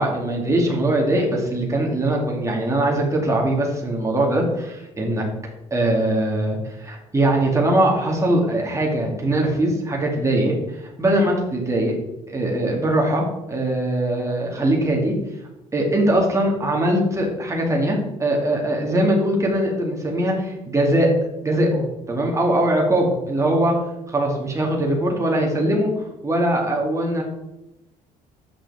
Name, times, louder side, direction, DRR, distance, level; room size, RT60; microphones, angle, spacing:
voice 1, 0.0-5.2 5.7-11.9 12.3-15.1 15.7-21.1 21.4-23.7 24.1-27.2, right 1 dB, 15° right, -1 dB, 2.0 m, -21 dB
6.7 x 5.7 x 3.5 m, 0.92 s
supercardioid pair, 70°, 17 cm